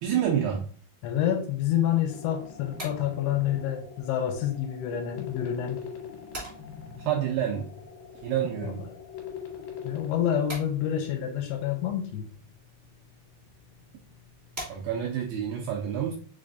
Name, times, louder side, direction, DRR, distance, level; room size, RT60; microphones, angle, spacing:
voice 1, 0.0-0.7 7.1-7.7 8.2-8.8 14.7-16.1, right 9 dB, 90° right, -1 dB, 2.1 m, -28 dB
voice 2, 1.0-5.9 8.6-8.7 9.8-12.3, left 10 dB, 85° left, 3 dB, 2.7 m, -28 dB
sound 1, 2.1-10.1, left 7 dB, 70° left, 2.7 m, -42 dB
sound 2, 2.4-15.3, equal, 40° right, 0.8 m, -47 dB
5.9 x 3.4 x 2.5 m, 0.43 s
omnidirectional pair, 4.8 m